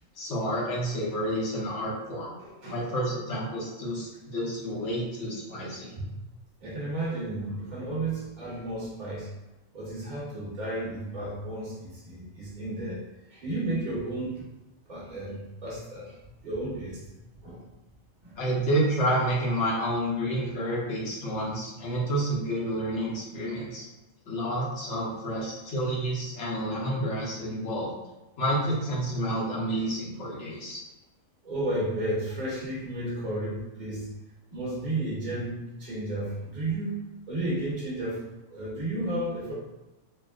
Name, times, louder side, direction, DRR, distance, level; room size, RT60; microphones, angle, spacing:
voice 1, 0.2-2.3 2.6-5.9 18.4-23.9 24.2-27.9 28.4-30.8, right 1 dB, 65° left, -5 dB, 1.1 m, -29 dB
voice 2, 2.4-2.8 6.0-6.1 6.6-9.3 9.7-13.0 13.3-14.5 14.9-16.2 16.4-17.0 17.4-17.6 18.2-18.4 31.4-34.1 34.5-37.0 37.3-39.5, right 1 dB, 35° right, -7 dB, 1.1 m, -33 dB
4.3 x 2.0 x 2.4 m, 1.0 s
omnidirectional pair, 1.4 m